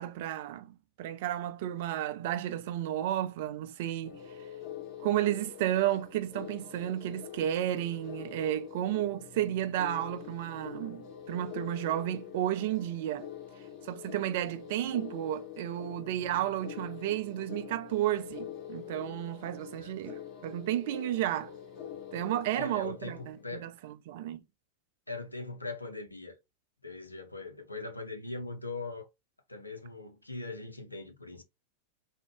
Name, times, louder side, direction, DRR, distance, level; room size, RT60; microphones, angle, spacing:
voice 1, 0.0-4.1 5.0-13.3 13.8-21.5 22.1-24.4, right 12 dB, 50° right, 0.5 m, -32 dB
sound 1, 4.0-23.5, left 9 dB, 40° left, 1.1 m, -45 dB
voice 2, 22.5-23.7 25.1-26.4 26.8-29.1 29.5-31.4, left 3 dB, 85° left, 0.7 m, -40 dB
3.6 x 2.3 x 3.4 m
figure-of-eight pair, 90°, 0 cm